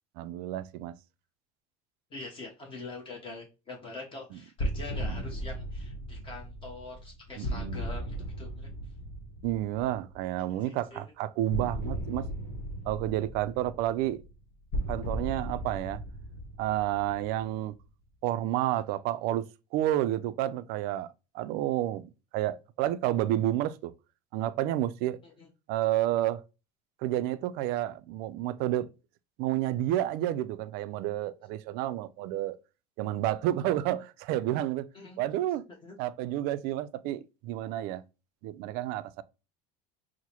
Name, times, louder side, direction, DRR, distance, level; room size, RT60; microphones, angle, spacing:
voice 1, 0.2-1.0 4.3-4.4 5.0-5.2 7.4-7.9 9.4-12.3 12.9-14.2 14.9-16.0 16.6-17.7 18.2-19.5 19.7-23.9 24.3-25.2 25.7-26.4 27.0-28.9 29.4-32.6 33.0-34.9 35.2-35.6 36.0-38.0 38.4-39.2, right 13 dB, 60° right, 0.4 m, -30 dB
voice 2, 2.1-8.7 10.7-11.0 25.2-25.5 34.9-35.2 35.8-35.9, left 3 dB, 30° left, 1.0 m, -44 dB
sound 1, 4.6-10.3 11.5-17.8, equal, 55° left, 1.4 m, -37 dB
6.0 x 2.1 x 2.9 m
supercardioid pair, 125°, 19 cm